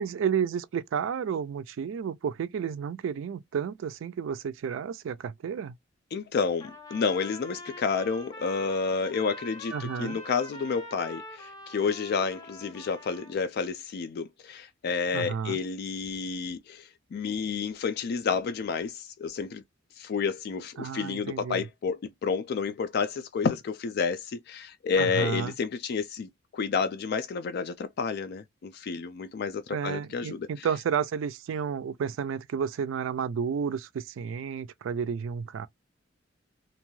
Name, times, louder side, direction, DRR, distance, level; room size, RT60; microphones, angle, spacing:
voice 1, 0.0-5.7 9.7-10.2 15.1-15.6 20.8-21.6 25.0-25.5 29.7-35.7, right 7 dB, 80° right, 0.3 m, -31 dB
voice 2, 6.1-19.6 20.0-30.7, left 5 dB, 55° left, 0.3 m, -30 dB
Trumpet, 6.6-13.3, left 1 dB, 20° left, 1.0 m, -45 dB
2.6 x 2.3 x 3.0 m
head